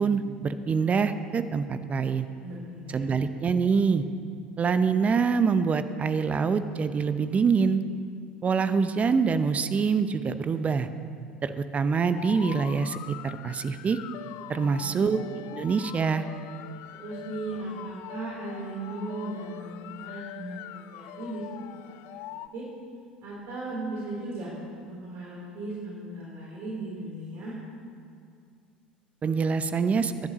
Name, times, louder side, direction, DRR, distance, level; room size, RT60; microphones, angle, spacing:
voice 1, 0.0-2.3 2.9-4.0 4.6-7.8 8.4-10.9 11.4-14.0 14.5-15.2 15.5-16.3 29.2-30.1, right 5 dB, 25° right, 11 dB, 0.7 m, -25 dB
voice 2, 2.4-3.1 14.6-15.1 16.9-20.6 20.9-21.9 22.5-22.6 23.2-24.5 24.9-27.5, right 2 dB, 50° right, -5 dB, 3.7 m, -37 dB
sound 1, 12.2-22.5, left 13 dB, 55° left, 0.4 m, -43 dB
23.5 x 10.5 x 3.1 m, 2.3 s
figure-of-eight pair, 70°, 5 cm